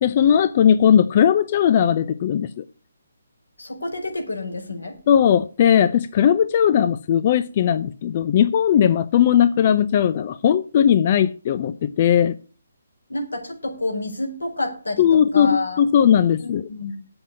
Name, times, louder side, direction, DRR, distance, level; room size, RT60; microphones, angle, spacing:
voice 1, 0.0-2.6 5.1-12.4 15.0-16.6, left 9 dB, 40° left, 0.6 m, -18 dB
voice 2, 3.6-5.0 13.1-15.0 15.3-15.8 16.4-17.0, left 2 dB, 90° left, 4.7 m, -28 dB
9.2 x 7.9 x 7.2 m
figure-of-eight pair, 145°, 0 cm